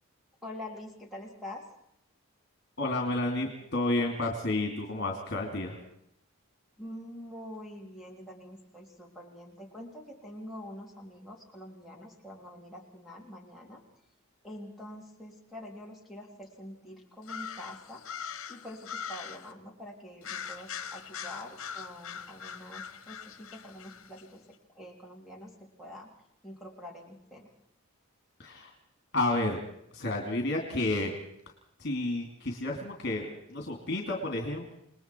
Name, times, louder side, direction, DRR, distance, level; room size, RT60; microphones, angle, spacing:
voice 1, 0.4-1.6 6.8-13.8 14.4-18.0 18.5-24.4 24.7-26.1 26.4-27.5, left 1 dB, ahead, -1 dB, 3.3 m, -45 dB
voice 2, 2.8-5.8 28.4-28.7 29.1-29.6 29.9-31.1 31.8-34.7, left 2 dB, 50° left, 2 dB, 2.8 m, -31 dB
sound 1, 17.2-19.5 20.2-24.2, left 7 dB, 70° left, 1.4 m, -42 dB
28.5 x 20.0 x 4.6 m, 0.72 s
head